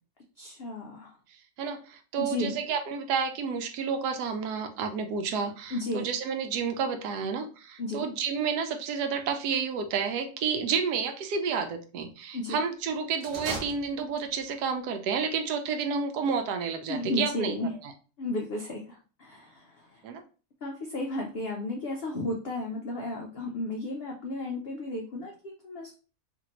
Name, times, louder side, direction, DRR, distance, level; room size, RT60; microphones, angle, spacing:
voice 1, 0.4-1.1 2.2-2.6 5.7-6.1 7.8-8.1 12.3-12.6 16.9-17.7 18.2-20.0 20.6-25.9, left 2 dB, 75° left, 0 dB, 0.5 m, -33 dB
voice 2, 1.6-17.5 20.0-20.2, right 6 dB, 85° right, 6 dB, 1.1 m, -30 dB
sound 1, 13.1-14.5, right 4 dB, 60° right, 0.6 m, -39 dB
2.8 x 2.6 x 2.9 m, 0.37 s
omnidirectional pair, 1.7 m